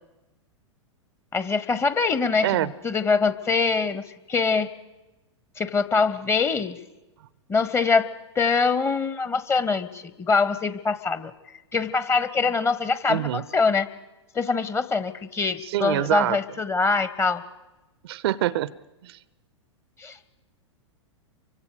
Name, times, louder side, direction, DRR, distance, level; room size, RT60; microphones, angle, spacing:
voice 1, 1.3-4.7 5.6-6.8 7.5-8.1 8.3-11.3 11.7-13.9 14.3-17.4 20.0-20.2, left 4 dB, 15° left, 14 dB, 1.0 m, -24 dB
voice 2, 13.1-13.4 15.6-16.4 18.0-18.7 19.0-19.2, right 14 dB, 55° right, 20 dB, 0.7 m, -25 dB
29.0 x 24.5 x 5.0 m, 1.0 s
figure-of-eight pair, 100°, 16 cm